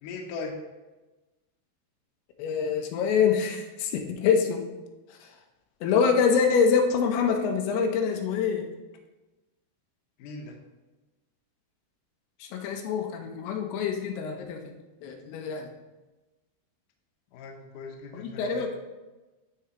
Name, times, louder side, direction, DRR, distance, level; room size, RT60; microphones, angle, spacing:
voice 1, 0.0-0.5 10.2-10.6 17.3-18.7, left 4 dB, 70° left, 1 dB, 2.2 m, -39 dB
voice 2, 2.4-4.6 5.2-5.3 5.8-8.7 12.4-14.7 15.0-15.7 18.1-18.9, left 6 dB, 90° left, 3 dB, 2.9 m, -25 dB
12.5 x 4.8 x 2.9 m, 1.1 s
omnidirectional pair, 4.6 m